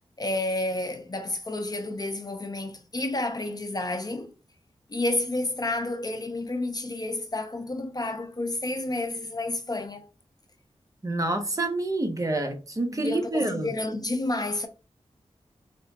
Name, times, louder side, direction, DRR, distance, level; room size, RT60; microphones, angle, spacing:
voice 1, 0.2-4.3 4.9-10.1 12.9-14.7, left 2 dB, 35° left, 0.6 m, -30 dB
voice 2, 11.0-13.7, right 2 dB, 30° right, 0.8 m, -27 dB
4.4 x 2.5 x 2.2 m
cardioid pair, 55°, 12 cm